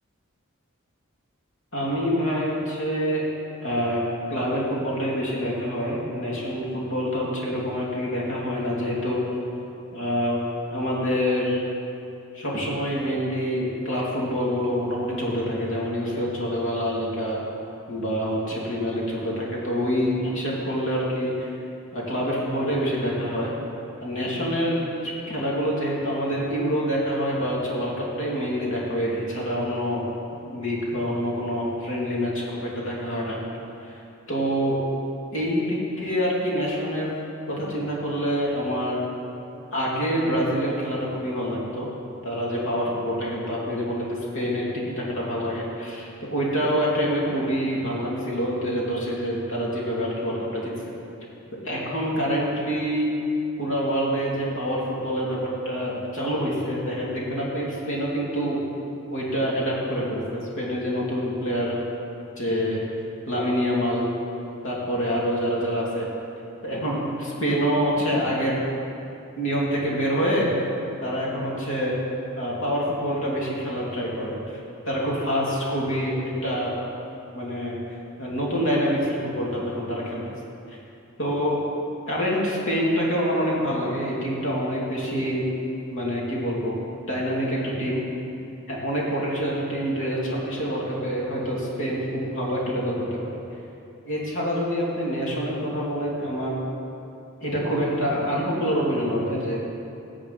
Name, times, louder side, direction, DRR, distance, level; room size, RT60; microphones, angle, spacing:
voice 1, 1.7-3.3 3.6-4.0 4.3-9.2 9.9-10.4 10.7-11.6 12.3-17.4 17.9-21.5 21.9-23.5 24.0-30.0 30.5-33.4 33.8-34.0 34.3-34.8 35.3-37.1 37.5-39.0 39.7-41.9 42.2-50.7 51.6-53.1 53.6-58.6 59.1-61.8 62.4-62.8 63.3-64.1 64.6-66.1 66.6-68.6 69.4-70.5 71.0-71.9 72.4-74.6 74.8-76.7 77.3-77.8 78.2-80.3 80.7-80.8 81.2-81.6 82.1-85.5 85.9-86.8 87.1-88.0 88.7-93.3 94.0-96.5 97.4-99.6, equal, 65° left, -5 dB, 2.8 m, -26 dB
16.5 x 8.2 x 4.1 m, 2.8 s
head